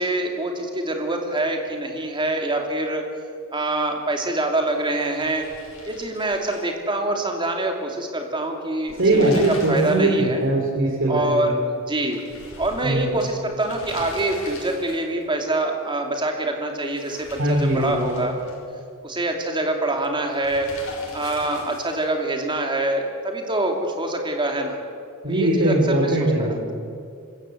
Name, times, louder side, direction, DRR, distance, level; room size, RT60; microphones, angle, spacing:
voice 1, 0.0-3.0 3.5-5.5 5.9-9.4 9.7-10.4 11.1-12.2 12.6-18.3 19.0-20.7 21.1-24.8 25.3-26.6, right 2 dB, 20° right, 3 dB, 2.8 m, -25 dB
sound 1, 4.8-7.3 7.6-7.7 8.7-10.1 10.4-10.5 12.1-15.2 16.8-18.8 20.4-22.1, left 2 dB, 70° left, 5.8 m, -41 dB
voice 2, 9.0-11.5 12.8-13.1 17.4-18.2 25.2-26.7, right 1 dB, 60° right, -4 dB, 3.7 m, -21 dB
25.5 x 15.0 x 7.9 m, 2.4 s
head